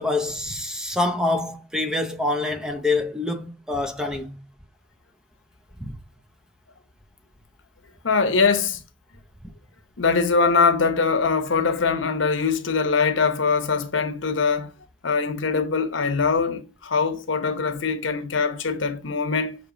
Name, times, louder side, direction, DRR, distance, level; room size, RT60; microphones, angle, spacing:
voice 1, 0.0-4.4 5.8-5.9, left 2 dB, 5° right, 0.7 m, -26 dB
voice 2, 8.0-8.8 10.0-14.7 15.0-19.6, left 5 dB, 75° left, 0.9 m, -22 dB
6.5 x 3.1 x 4.9 m
head